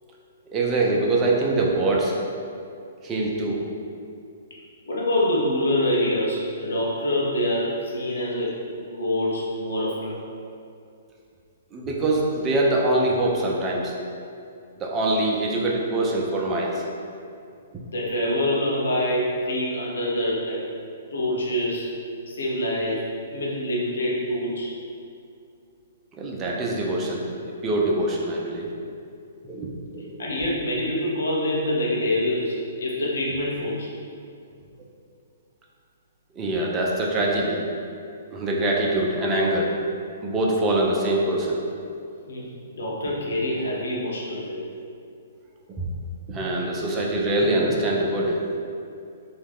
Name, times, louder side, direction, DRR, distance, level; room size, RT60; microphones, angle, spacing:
voice 1, 0.5-2.1 3.0-3.6 11.7-13.9 14.8-16.8 17.7-17.8 26.1-27.2 27.6-28.7 29.4-30.2 36.4-37.6 38.3-39.7 40.2-41.6 45.7-45.8 46.3-48.4, right 2 dB, 20° right, -2 dB, 0.4 m, -24 dB
voice 2, 4.9-10.2 17.9-20.6 21.1-21.9 22.3-24.7 30.2-33.9 42.3-42.5 42.8-44.6, left 1 dB, 80° left, -4 dB, 0.6 m, -25 dB
2.3 x 2.0 x 3.4 m, 2.5 s
hypercardioid pair, 145°, 0 cm